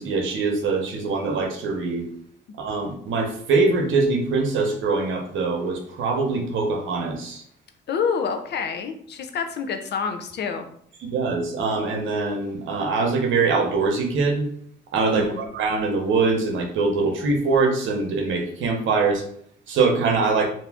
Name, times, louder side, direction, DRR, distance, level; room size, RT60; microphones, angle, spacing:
voice 1, 0.0-2.1 2.6-7.4 11.0-14.5 14.9-19.2 19.7-20.5, right 4 dB, 75° right, 2 dB, 0.8 m, -23 dB
voice 2, 7.9-10.7 15.1-15.5, left 6 dB, 60° left, 6 dB, 0.5 m, -27 dB
2.7 x 2.4 x 3.4 m, 0.65 s
cardioid pair, 90°, 20 cm